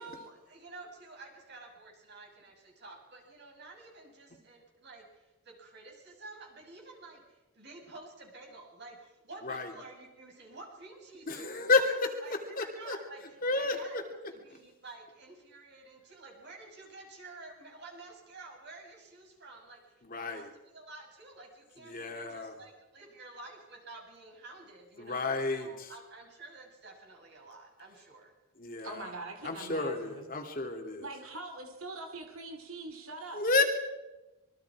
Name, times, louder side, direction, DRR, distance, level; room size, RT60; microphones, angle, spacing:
voice 1, 0.0-11.7 12.2-14.0 14.3-20.5 20.7-28.3, right 3 dB, 50° right, 0 dB, 6.7 m, -50 dB
voice 2, 11.3-12.2 12.6-13.0 13.4-14.0 20.0-20.5 21.8-22.5 25.0-25.9 28.6-29.0 29.4-31.1 33.3-33.6, left 3 dB, 40° left, 3 dB, 2.8 m, -31 dB
voice 3, 28.8-30.3 31.0-33.6, right 2 dB, 75° right, 5 dB, 2.5 m, -43 dB
26.0 x 22.5 x 4.9 m, 1.1 s
head